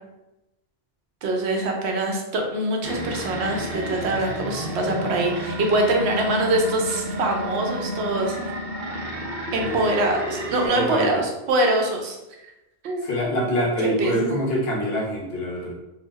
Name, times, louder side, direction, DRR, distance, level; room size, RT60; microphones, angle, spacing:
voice 1, 1.2-8.4 9.5-12.2 12.8-13.1 13.8-14.3, right 2 dB, 80° right, 1 dB, 0.9 m, -24 dB
sound 1, 2.8-10.7, equal, 55° right, 0.7 m, -31 dB
voice 2, 10.7-11.2 13.0-15.7, equal, 70° left, -4 dB, 1.0 m, -25 dB
2.7 x 2.0 x 3.3 m, 0.96 s
omnidirectional pair, 1.1 m